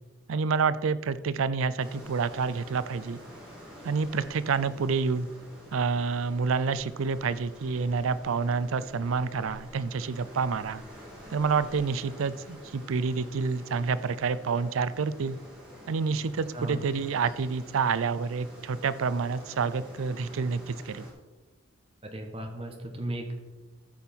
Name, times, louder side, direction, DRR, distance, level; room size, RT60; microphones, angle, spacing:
voice 1, 0.3-3.2 3.8-5.3 5.7-10.8 11.3-15.4 15.9-21.1, right 5 dB, 80° right, 15 dB, 0.4 m, -28 dB
sound 1, 1.8-21.1, equal, 5° right, 2.6 m, -48 dB
voice 2, 22.0-23.4, right 1 dB, 25° right, 3 dB, 1.2 m, -35 dB
14.0 x 5.4 x 4.4 m, 1.2 s
head